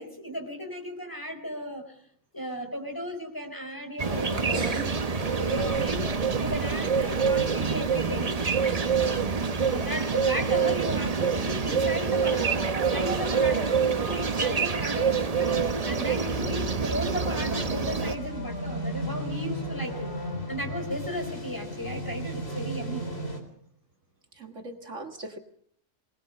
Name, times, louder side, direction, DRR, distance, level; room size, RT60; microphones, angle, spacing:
voice 1, 0.0-2.0 2.3-4.8 5.2-9.1 9.7-20.1 20.5-23.1, equal, 15° left, 4 dB, 4.3 m, -35 dB
sound 1, 4.0-18.1, right 5 dB, 30° right, 0.9 m, -26 dB
voice 2, 4.5-5.0 24.3-25.4, right 1 dB, 60° right, 5 dB, 2.0 m, -36 dB
sound 2, 5.5-14.5 14.8-15.1, equal, 85° left, 8.5 m, -49 dB
sound 3, 16.3-23.4, right 1 dB, 45° left, 4.2 m, -34 dB
23.0 x 19.5 x 6.5 m, 0.66 s
omnidirectional pair, 1.5 m